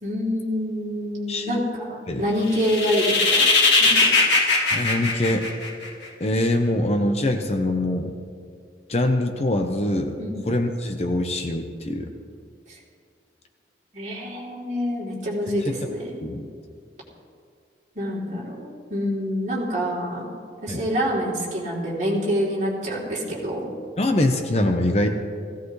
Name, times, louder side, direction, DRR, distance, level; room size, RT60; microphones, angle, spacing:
voice 1, 0.0-3.5 3.8-4.0 10.2-10.4 12.7-12.8 13.9-16.3 17.9-20.3 20.6-23.7, equal, 40° right, -6 dB, 3.2 m, -26 dB
sound 1, 2.5-6.1, left 3 dB, 85° left, 1.8 m, -20 dB
voice 2, 4.7-5.5 6.2-8.2 8.9-10.2 10.5-12.1 15.6-15.9 16.2-16.5 20.7-20.9 24.0-25.1, left 1 dB, 35° left, 5 dB, 0.8 m, -23 dB
17.5 x 16.0 x 3.2 m, 2.2 s
head